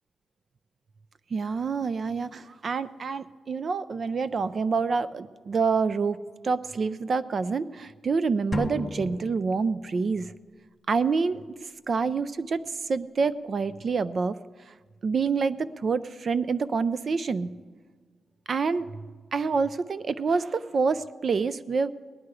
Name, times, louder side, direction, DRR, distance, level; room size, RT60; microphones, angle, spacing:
voice 1, 1.3-10.3 10.9-14.4 14.7-14.8 15.0-17.5 18.5-19.0 19.3-21.9, right 4 dB, 40° right, 15 dB, 0.3 m, -27 dB
sound 1, 8.5-10.2, left 2 dB, 20° left, 0.5 m, -35 dB
18.5 x 11.0 x 4.8 m, 1.5 s
wide cardioid pair, 170°, 0 cm